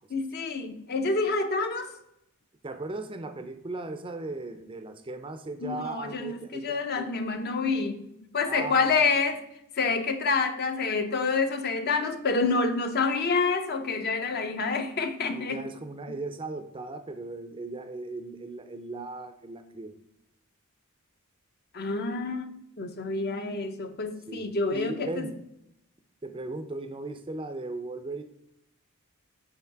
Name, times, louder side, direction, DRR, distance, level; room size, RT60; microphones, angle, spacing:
voice 1, 0.1-1.9 5.6-8.0 8.3-9.4 9.8-15.6 21.7-25.3, left 4 dB, 45° left, 0.7 m, -28 dB
voice 2, 2.6-7.1 8.5-9.0 15.3-19.9 24.3-25.4 26.2-28.2, right 2 dB, 25° right, 0.5 m, -37 dB
5.7 x 4.6 x 4.6 m
head